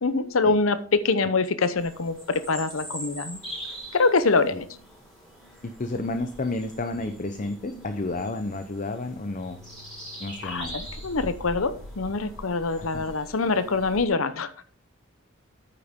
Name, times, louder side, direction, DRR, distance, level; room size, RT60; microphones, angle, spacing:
voice 1, 0.0-3.4 3.9-4.7 10.4-14.5, left 3 dB, 85° left, 13 dB, 0.8 m, -24 dB
sound 1, 1.8-14.1, equal, ahead, 4.7 m, -42 dB
voice 2, 5.6-9.6 10.2-10.8 12.8-13.0, left 2 dB, 40° left, 8 dB, 0.7 m, -31 dB
9.3 x 8.7 x 3.7 m, 0.41 s
head